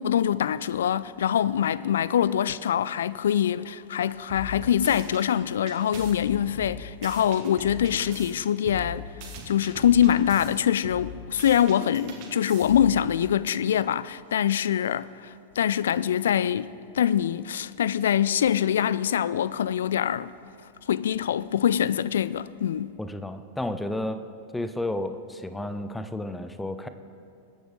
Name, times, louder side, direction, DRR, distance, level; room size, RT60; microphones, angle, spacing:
voice 1, 0.0-9.1 9.5-20.3 20.9-23.0, left 9 dB, 65° left, 0.3 m, -24 dB
sound 1, 4.3-5.2 5.7-8.3 8.6-10.5 10.8-13.0, left 1 dB, 45° right, 2.2 m, -40 dB
voice 2, 23.0-24.2 24.5-26.9, left 1 dB, 5° left, 0.7 m, -32 dB
21.5 x 9.5 x 3.7 m
figure-of-eight pair, 90°, 0 cm